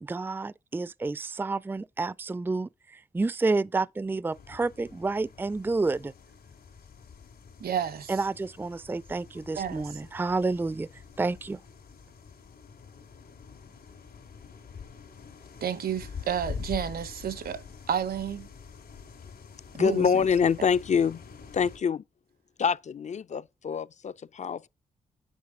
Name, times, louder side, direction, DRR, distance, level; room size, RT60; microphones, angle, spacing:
voice 1, 0.0-6.1 8.1-10.9 11.2-11.6, right 3 dB, 15° right, 0.4 m, -29 dB
sound 1, 4.3-21.8, left 6 dB, 80° left, 2.7 m, -46 dB
voice 2, 7.6-8.1 9.6-9.9 15.6-18.5 19.8-20.1, right 8 dB, 75° right, 1.0 m, -31 dB
voice 3, 19.7-21.2 21.5-22.0 22.6-24.7, left 6 dB, 50° left, 0.4 m, -26 dB
9.6 x 4.5 x 3.7 m
supercardioid pair, 50°, 16 cm